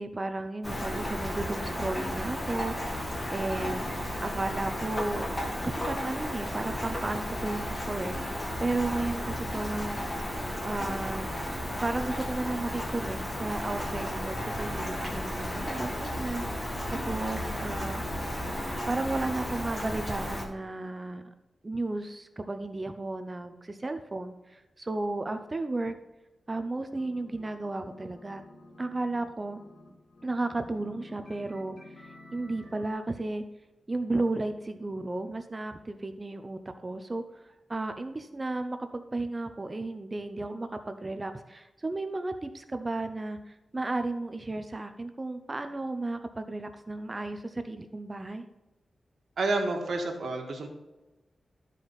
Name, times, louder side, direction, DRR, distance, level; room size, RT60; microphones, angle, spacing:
voice 1, 0.0-3.9 4.2-5.2 5.6-10.0 10.6-11.3 11.8-18.0 18.9-21.2 21.6-25.9 26.5-28.4 28.8-29.6 30.2-33.4 33.9-48.4, right 2 dB, 25° right, 8 dB, 0.5 m, -34 dB
Rain, 0.6-20.5, equal, 25° left, 1.6 m, -34 dB
sound 1, 26.9-27.6 27.8-32.9, left 2 dB, 45° left, 1.8 m, -51 dB
voice 2, 49.4-50.7, right 2 dB, 70° right, 2 dB, 1.5 m, -29 dB
12.5 x 4.9 x 4.0 m, 1.0 s
wide cardioid pair, 125°, 0 cm